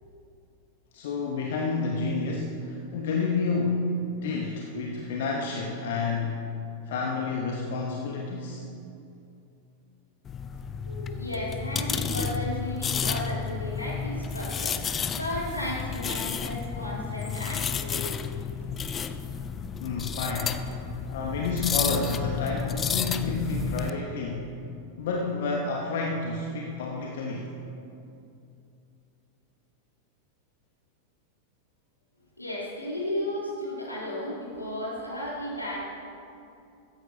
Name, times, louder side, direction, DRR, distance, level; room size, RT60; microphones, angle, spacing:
voice 1, 0.9-6.5 6.9-8.6 19.8-24.5 25.0-27.5, left 3 dB, 55° left, 0 dB, 1.1 m, -30 dB
sound 1, 10.3-23.9, left 7 dB, 25° left, 0.5 m, -31 dB
voice 2, 10.8-18.4 18.7-18.8 32.4-35.8, left 1 dB, 85° left, -6 dB, 3.3 m, -34 dB
15.5 x 14.0 x 2.8 m, 2.6 s
figure-of-eight pair, 90°, 0 cm